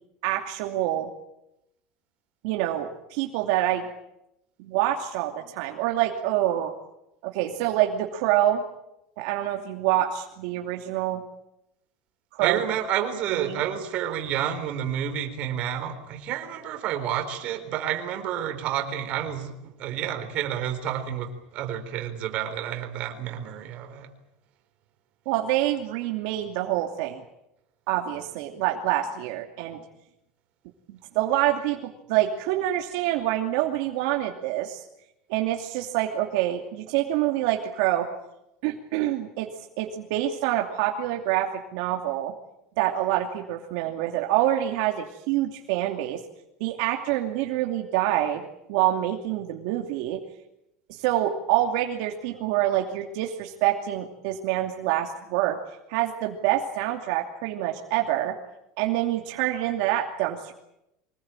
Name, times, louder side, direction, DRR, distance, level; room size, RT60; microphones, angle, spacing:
voice 1, 0.2-1.1 2.4-3.9 4.6-6.7 7.2-8.6 9.2-11.2 12.4-12.6 13.3-13.6 25.3-27.2 27.9-29.8 30.9-34.8 35.3-38.1 38.6-39.5 39.8-42.3 42.8-46.2 46.6-50.2 50.9-55.6 55.9-58.3 58.8-60.5, right 13 dB, 70° right, 2 dB, 2.7 m, -26 dB
voice 2, 12.4-24.1, right 10 dB, 50° right, 7 dB, 4.1 m, -30 dB
24.5 x 20.0 x 9.0 m, 0.87 s
cardioid pair, 145°, 3 cm